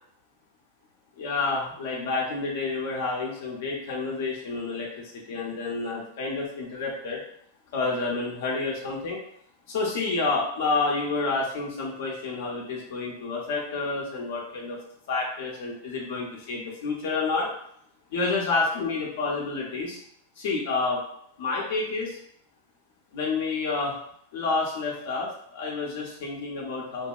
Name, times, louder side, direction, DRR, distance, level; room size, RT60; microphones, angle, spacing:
voice 1, 1.2-7.2 7.7-9.2 9.7-14.8 15.1-17.5 18.1-20.0 20.4-21.0 21.4-22.2 23.1-24.0 24.3-27.1, left 3 dB, 65° left, -2 dB, 0.7 m, -29 dB
2.8 x 2.7 x 2.3 m, 0.69 s
supercardioid pair, 145°, 0 cm